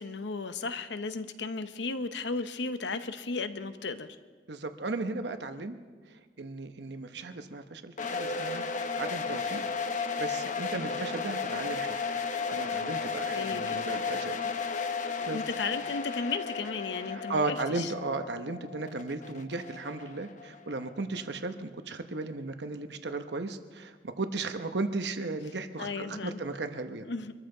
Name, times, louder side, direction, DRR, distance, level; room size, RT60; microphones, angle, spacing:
voice 1, 0.0-4.1 13.3-13.8 15.2-17.9 25.8-26.4 27.0-27.3, left 4 dB, 85° left, 10 dB, 0.8 m, -35 dB
voice 2, 4.5-5.8 6.1-8.6 9.0-9.6 9.9-12.0 12.5-14.5 15.3-15.4 17.1-27.1, right 3 dB, 70° right, 8 dB, 0.9 m, -35 dB
sound 1, 8.0-20.8, left 5 dB, 45° left, 0.9 m, -34 dB
24.0 x 13.5 x 3.9 m, 1.4 s
head